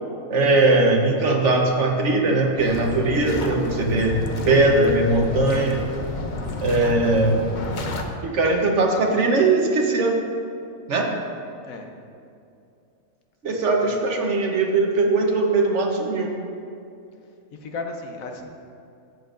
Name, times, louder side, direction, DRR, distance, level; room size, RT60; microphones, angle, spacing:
voice 1, 0.3-4.2 4.5-5.9 6.6-7.4 8.2-10.2 10.9-11.1 13.4-16.3, right 2 dB, 60° right, 1 dB, 1.3 m, -20 dB
sound 1, 2.6-8.0, left 3 dB, 45° left, 0.6 m, -31 dB
voice 2, 17.6-18.5, left 3 dB, 75° left, 3 dB, 1.2 m, -34 dB
13.0 x 8.0 x 2.5 m, 2.5 s
omnidirectional pair, 1.4 m